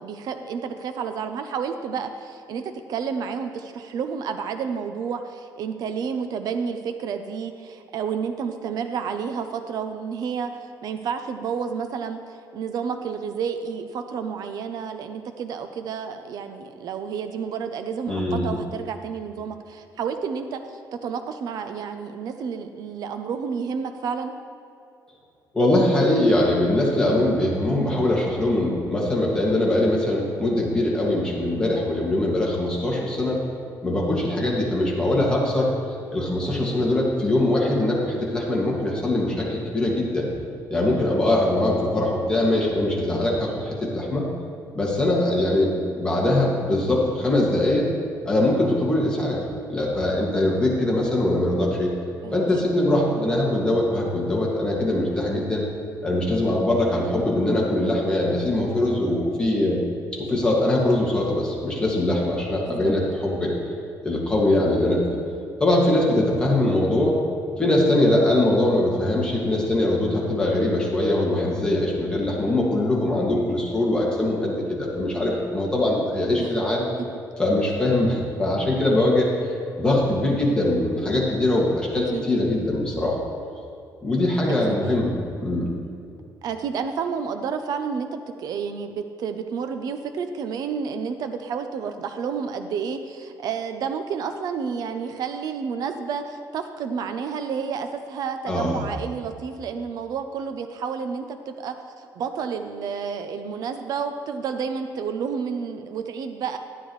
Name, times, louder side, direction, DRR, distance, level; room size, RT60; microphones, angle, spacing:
voice 1, 0.0-2.6 2.9-24.3 52.2-52.4 53.2-53.3 62.7-62.9 76.4-76.5 82.1-82.2 84.7-84.8 86.4-106.6, right 6 dB, 60° right, 7 dB, 0.6 m, -30 dB
voice 2, 18.1-18.5 25.5-33.4 33.8-35.7 36.1-40.3 40.7-44.3 44.7-47.9 48.3-49.4 49.7-51.9 52.3-55.6 56.0-59.8 60.1-63.5 64.0-65.0 65.6-67.2 67.6-76.9 77.4-79.3 79.8-83.1 84.0-85.7 98.5-98.9, left 1 dB, 10° left, -4 dB, 2.0 m, -22 dB
11.5 x 9.8 x 3.2 m, 2.5 s
cardioid pair, 140°, 7 cm